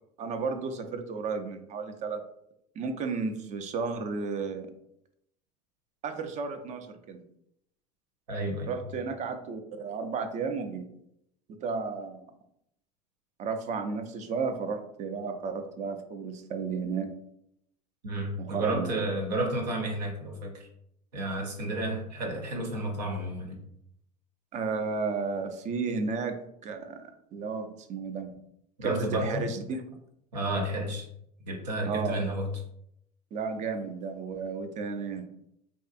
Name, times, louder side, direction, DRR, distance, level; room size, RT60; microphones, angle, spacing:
voice 1, 0.0-2.2 2.8-4.7 6.0-7.2 8.7-10.8 11.5-12.2 13.4-17.1 18.4-19.0 24.5-26.3 26.6-28.4 28.8-29.8 31.9-32.2 33.3-35.3, right 4 dB, 35° right, 7 dB, 0.4 m, -33 dB
voice 2, 8.3-8.7 18.0-20.7 21.1-23.6 28.8-29.5 30.3-31.1 31.5-32.5, right 1 dB, 85° right, 0 dB, 0.7 m, -31 dB
2.6 x 2.4 x 2.3 m, 0.75 s
hypercardioid pair, 85°, 21 cm